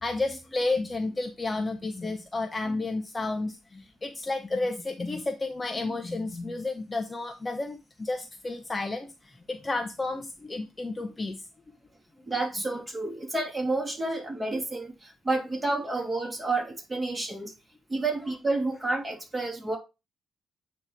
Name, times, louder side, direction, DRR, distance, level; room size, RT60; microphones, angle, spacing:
voice 1, 0.0-11.4, left 2 dB, 20° left, 0.9 m, -31 dB
voice 2, 12.3-17.5 17.9-19.8, right 2 dB, 20° right, 2.7 m, -30 dB
8.8 x 3.2 x 4.4 m
cardioid pair, 90°, 0 cm